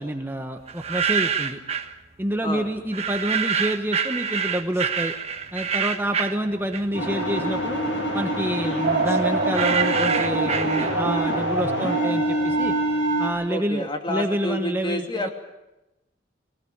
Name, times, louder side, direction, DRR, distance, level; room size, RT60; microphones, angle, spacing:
voice 1, 0.0-1.6 2.2-5.1 5.5-7.8 8.1-12.7 13.2-15.3, right 1 dB, 10° right, 5 dB, 1.1 m, -28 dB
sound 1, 0.7-1.9 2.9-7.1 7.5-11.2, right 7 dB, 35° right, 1.4 m, -27 dB
sound 2, 6.9-13.3, right 1 dB, 80° left, 6.9 m, -26 dB
sound 3, 8.8-13.4, right 4 dB, 55° right, 0.9 m, -27 dB
voice 2, 13.5-15.3, left 1 dB, 25° left, 4 dB, 2.6 m, -29 dB
21.0 x 18.5 x 8.6 m, 0.95 s
head